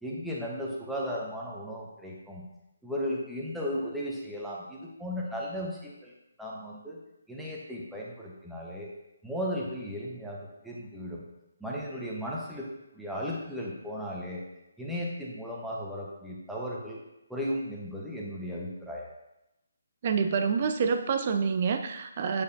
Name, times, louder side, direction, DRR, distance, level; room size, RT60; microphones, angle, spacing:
voice 1, 0.0-2.4 2.8-6.1 6.4-7.0 7.3-8.9 9.2-10.4 10.6-11.2 11.6-12.7 12.9-14.4 14.8-17.0 17.3-19.1, equal, ahead, -4 dB, 1.0 m, -35 dB
voice 2, 20.0-22.4, right 5 dB, 40° right, 7 dB, 0.5 m, -27 dB
8.1 x 5.2 x 2.6 m, 0.91 s
figure-of-eight pair, 140°, 0 cm